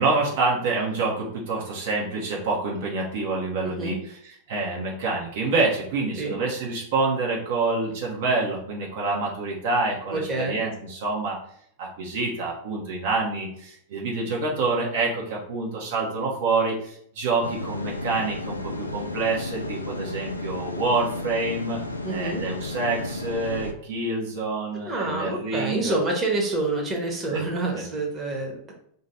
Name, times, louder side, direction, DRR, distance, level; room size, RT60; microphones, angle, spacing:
voice 1, 0.0-11.4 11.8-21.8 22.1-25.9 27.3-27.4 27.7-27.8, right 3 dB, 55° right, -3 dB, 0.8 m, -27 dB
voice 2, 3.6-4.0 6.2-6.4 10.1-10.6 22.0-22.4 24.9-28.7, right 2 dB, 20° right, 0 dB, 1.1 m, -27 dB
sound 1, 17.4-23.7, left 2 dB, 80° left, 0.4 m, -33 dB
3.0 x 2.7 x 4.2 m, 0.66 s
figure-of-eight pair, 90°, 0 cm